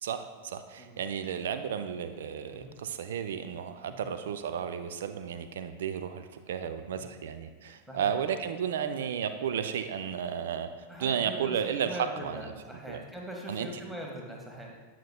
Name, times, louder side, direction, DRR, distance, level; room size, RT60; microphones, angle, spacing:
voice 1, 0.0-10.7 11.0-12.4 12.9-13.0 13.5-13.7, right 8 dB, 60° right, 9 dB, 0.4 m, -33 dB
voice 2, 10.9-14.7, equal, 5° right, -1 dB, 1.1 m, -42 dB
9.0 x 5.8 x 2.2 m, 1.3 s
figure-of-eight pair, 90°, 0 cm